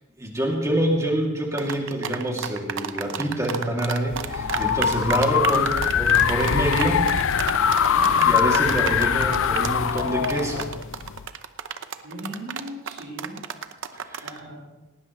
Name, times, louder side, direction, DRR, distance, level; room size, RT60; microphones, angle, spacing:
voice 1, 0.2-7.1 8.2-10.7 13.9-14.3, right 1 dB, 15° right, -1 dB, 2.6 m, -26 dB
sound 1, 1.6-14.4, right 7 dB, 60° right, 0.8 m, -31 dB
sound 2, 4.1-11.3, left 7 dB, 60° left, 0.5 m, -22 dB
voice 2, 7.8-8.1 12.0-13.4 14.2-14.7, right 1 dB, 90° right, -6 dB, 6.9 m, -38 dB
19.0 x 18.0 x 3.2 m, 1.1 s
head